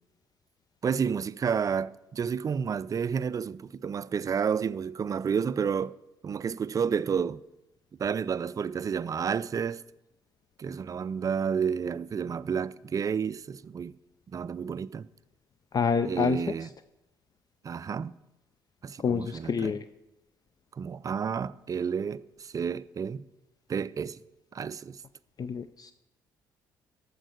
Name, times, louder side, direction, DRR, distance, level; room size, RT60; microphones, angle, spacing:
voice 1, 0.8-6.0 6.2-7.4 8.0-9.8 10.6-14.0 14.3-15.1 16.0-16.7 17.6-18.1 18.8-19.8 20.8-23.3 23.7-24.2 24.5-25.0, right 6 dB, 35° right, 0.4 m, -30 dB
voice 2, 15.7-16.4 19.0-19.8 25.4-25.9, left 6 dB, 40° left, 0.4 m, -27 dB
13.5 x 4.6 x 6.4 m
hypercardioid pair, 50°, 10 cm